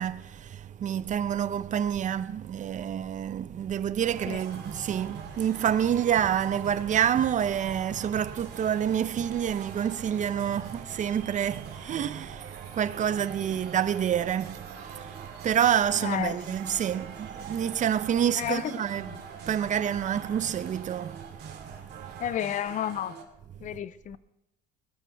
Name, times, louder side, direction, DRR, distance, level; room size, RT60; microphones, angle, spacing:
voice 1, 0.0-19.1 19.4-21.8 23.6-23.7, right 9 dB, 40° right, 0.7 m, -28 dB
sound 1, 4.0-23.2, right 6 dB, 55° right, 3.7 m, -43 dB
voice 2, 15.9-16.7 18.3-18.7 19.0-19.2 22.2-23.2 23.6-24.2, left 10 dB, 40° left, 0.6 m, -32 dB
21.5 x 13.0 x 3.5 m
cardioid pair, 110°, 20 cm